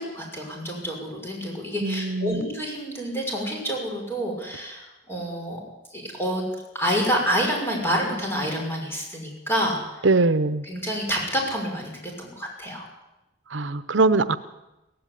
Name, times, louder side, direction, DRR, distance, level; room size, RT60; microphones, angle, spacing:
voice 1, 0.0-5.6 5.9-6.4 6.7-10.1 10.6-12.9, equal, 10° left, 0 dB, 6.1 m, -28 dB
voice 2, 1.8-2.4 10.0-10.7 13.5-14.4, right 3 dB, 70° right, 13 dB, 0.8 m, -21 dB
17.0 x 16.0 x 9.9 m, 0.97 s
head